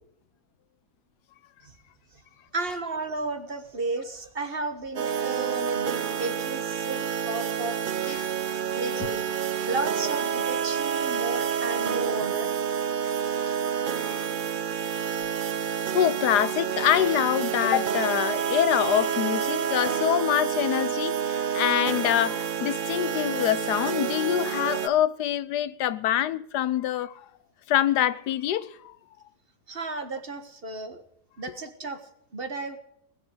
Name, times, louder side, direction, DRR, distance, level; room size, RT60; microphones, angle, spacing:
voice 1, 2.5-8.2 8.7-9.2 9.7-12.6 29.7-31.0 31.4-32.8, right 3 dB, 40° right, 1.5 m, -33 dB
sound 1, 4.9-24.9, right 8 dB, 60° right, 0.5 m, -28 dB
voice 2, 15.9-27.2 27.7-28.9, left 11 dB, 85° left, 1.4 m, -25 dB
20.0 x 7.9 x 7.9 m
omnidirectional pair, 1.7 m